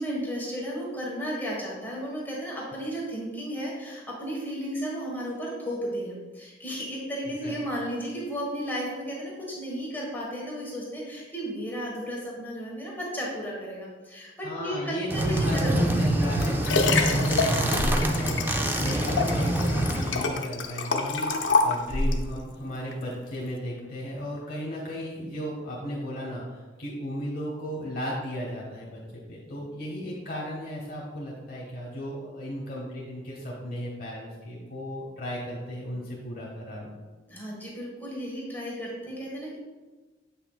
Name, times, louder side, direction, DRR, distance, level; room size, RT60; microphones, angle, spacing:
voice 1, 0.0-15.9 37.3-39.6, equal, 10° left, -5 dB, 1.4 m, -34 dB
voice 2, 14.4-36.9, equal, 50° left, -4 dB, 1.1 m, -35 dB
sound 1, 15.1-20.2, right 1 dB, 10° right, 0.4 m, -26 dB
Liquid, 16.0-22.3 22.9-23.0, left 3 dB, 85° left, 0.6 m, -27 dB
7.5 x 5.5 x 2.3 m, 1.3 s
head